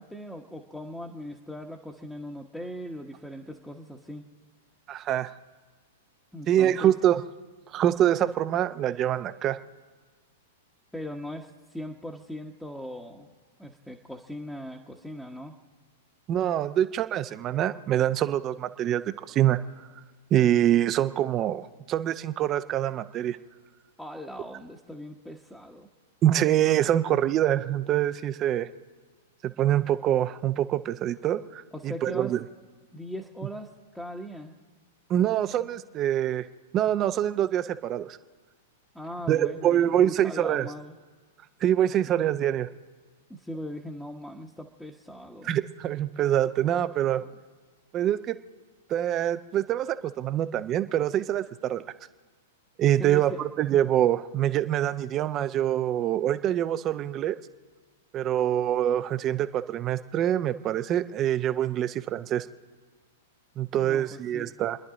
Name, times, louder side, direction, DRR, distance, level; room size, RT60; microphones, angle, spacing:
voice 1, 0.0-4.2 6.3-6.9 10.9-13.3 13.6-15.5 24.0-25.9 31.7-32.3 32.9-33.7 33.9-34.5 38.9-40.9 43.3-45.5 47.2-47.3 53.0-53.4 63.7-64.5, equal, 5° left, -1 dB, 1.1 m, -39 dB
voice 2, 4.9-5.3 6.5-7.2 7.7-9.6 16.3-19.6 20.3-23.4 26.2-28.7 29.4-32.4 35.1-36.5 36.7-38.2 39.3-40.7 41.6-42.7 45.4-47.2 47.9-48.3 48.9-51.8 52.8-57.4 58.1-62.5 63.6-64.8, right 11 dB, 35° right, 11 dB, 0.7 m, -25 dB
30.0 x 10.5 x 3.8 m, 1.4 s
hypercardioid pair, 105°, 0 cm